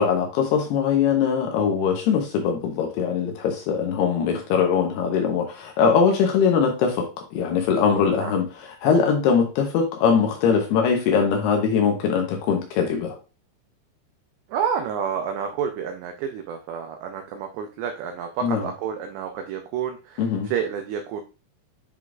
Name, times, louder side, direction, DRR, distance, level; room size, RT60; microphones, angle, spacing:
voice 1, 0.0-13.2 18.4-18.7 20.2-20.5, left 6 dB, 75° left, 3 dB, 2.5 m, -22 dB
voice 2, 14.5-21.2, right 7 dB, 85° right, 5 dB, 2.5 m, -29 dB
11.0 x 3.8 x 2.4 m, 0.31 s
omnidirectional pair, 5.7 m